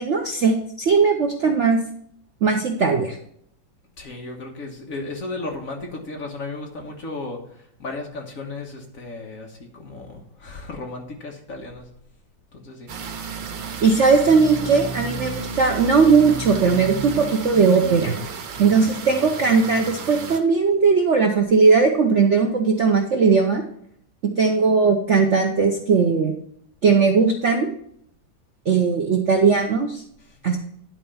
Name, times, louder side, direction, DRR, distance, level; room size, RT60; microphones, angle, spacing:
voice 1, 0.0-1.8 2.4-3.2 13.8-18.2 18.6-23.6 24.2-26.3 26.8-27.7 28.7-30.0 30.4-30.6, right 5 dB, 55° right, 3 dB, 0.8 m, -18 dB
voice 2, 4.0-11.9 12.5-12.9 30.2-30.6, left 2 dB, 45° left, 1 dB, 1.7 m, -35 dB
sound 1, 12.9-20.4, right 4 dB, 85° right, 1.8 m, -32 dB
10.5 x 4.4 x 5.5 m, 0.68 s
omnidirectional pair, 2.1 m